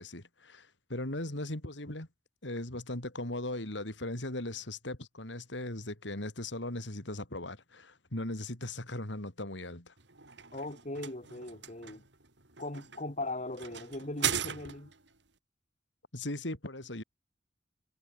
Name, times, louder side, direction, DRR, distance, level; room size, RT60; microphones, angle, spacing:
voice 1, 0.0-2.1 2.4-9.9 16.1-17.0, left 1 dB, 75° left, 3.8 m, -38 dB
sound 1, 10.0-15.1, right 8 dB, 70° right, 3.7 m, -38 dB
voice 2, 10.5-12.0 12.6-14.9, left 2 dB, 40° left, 3.1 m, -39 dB
head